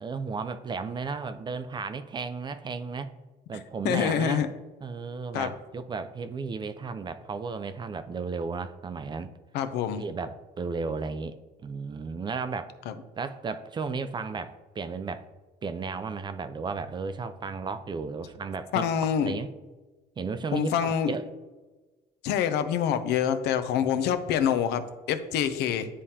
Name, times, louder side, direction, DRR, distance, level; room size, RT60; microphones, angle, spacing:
voice 1, 0.0-3.1 3.5-4.4 4.8-9.3 10.0-11.4 11.6-12.7 13.2-15.3 15.6-18.9 19.2-19.5 20.2-21.2 23.8-23.9, right 4 dB, 25° right, 10 dB, 0.4 m, -34 dB
voice 2, 3.8-4.5 5.3-5.5 9.5-10.0 12.9-13.0 18.7-19.3 20.5-21.1 22.2-25.9, left 8 dB, 80° left, 10 dB, 0.5 m, -26 dB
9.6 x 3.6 x 2.8 m, 1.2 s
cardioid pair, 110°, 17 cm